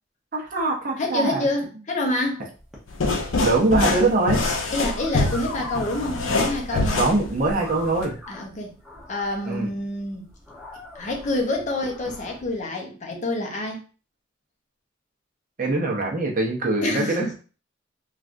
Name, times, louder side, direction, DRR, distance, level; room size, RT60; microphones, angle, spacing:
voice 1, 0.3-1.4 3.4-4.4 6.7-8.2 9.5-9.7 15.6-17.4, right 2 dB, 45° right, -1 dB, 0.7 m, -23 dB
voice 2, 1.0-2.4 4.7-7.0 8.3-8.7 9.1-10.3 10.9-13.8 16.8-17.4, left 1 dB, 40° left, 1 dB, 0.6 m, -27 dB
sound 1, 2.5-12.6, left 1 dB, 5° right, 0.8 m, -42 dB
sound 2, 2.9-8.1, left 2 dB, 85° left, 0.6 m, -25 dB
3.2 x 2.4 x 2.5 m, 0.37 s
head